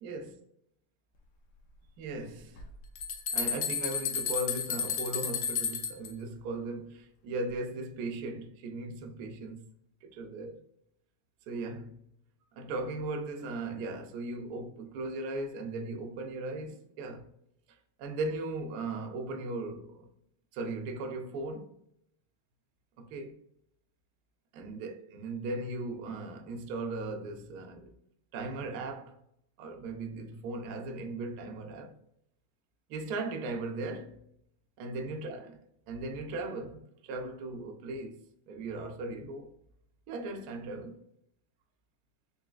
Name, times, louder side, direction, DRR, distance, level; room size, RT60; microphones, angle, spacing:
voice 1, 2.0-2.6 3.3-9.7 10.0-10.6 11.5-12.0 12.6-17.3 18.0-20.1 20.5-21.7 23.0-23.4 24.5-27.9 28.3-29.2 29.6-31.9 32.9-34.2 34.8-35.5 35.9-38.2 38.5-39.5 40.1-41.0, right 2 dB, 80° right, 0.8 m, -37 dB
sound 1, 2.6-2.7 3.0-6.1, left 7 dB, 75° left, 1.0 m, -32 dB
4.1 x 3.2 x 2.3 m
omnidirectional pair, 2.4 m